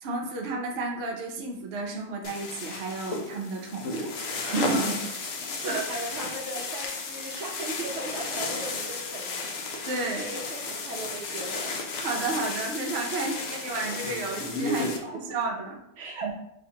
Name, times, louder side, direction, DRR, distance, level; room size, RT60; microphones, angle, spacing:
voice 1, 0.0-4.1 4.4-5.8 9.9-10.3 12.0-15.8 16.2-16.3, right 3 dB, 90° right, 1 dB, 0.5 m, -32 dB
sound 1, 2.2-15.0, left 3 dB, 65° left, 0.9 m, -33 dB
voice 2, 5.6-9.5 10.1-12.1 14.7-14.9 15.3-15.4 16.0-16.3, right 2 dB, 55° right, -1 dB, 0.9 m, -37 dB
5.0 x 2.5 x 2.8 m, 0.82 s
omnidirectional pair, 1.8 m